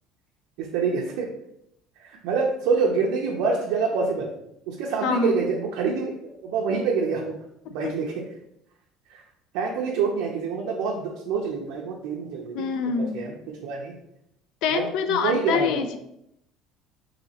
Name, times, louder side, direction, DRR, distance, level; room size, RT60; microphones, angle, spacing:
voice 1, 0.6-1.3 2.0-4.3 4.7-6.1 6.4-7.4 7.7-8.1 9.1-9.2 9.5-12.7 13.0-13.4 13.6-13.9 14.7-15.8, right 5 dB, 80° right, -2 dB, 0.5 m, -26 dB
voice 2, 5.0-5.4 7.8-7.9 12.5-13.3 14.6-16.0, left 6 dB, 65° left, 9 dB, 0.3 m, -25 dB
4.0 x 2.7 x 2.8 m, 0.78 s
cardioid pair, 160°, 0 cm